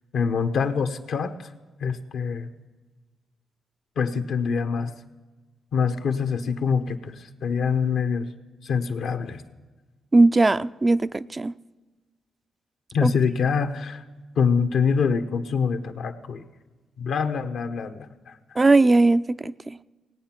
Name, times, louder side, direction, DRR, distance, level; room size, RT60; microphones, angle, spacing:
voice 1, 0.1-1.5 1.8-2.5 4.0-4.9 5.7-8.3 8.6-9.4 12.9-14.0 14.4-16.4 17.0-18.4, left 6 dB, 75° left, 7 dB, 1.0 m, -25 dB
voice 2, 10.1-11.5 13.0-13.1 18.6-19.8, right 2 dB, 30° right, 13 dB, 0.4 m, -19 dB
18.0 x 8.7 x 5.9 m, 1.3 s
supercardioid pair, 50°, 0 cm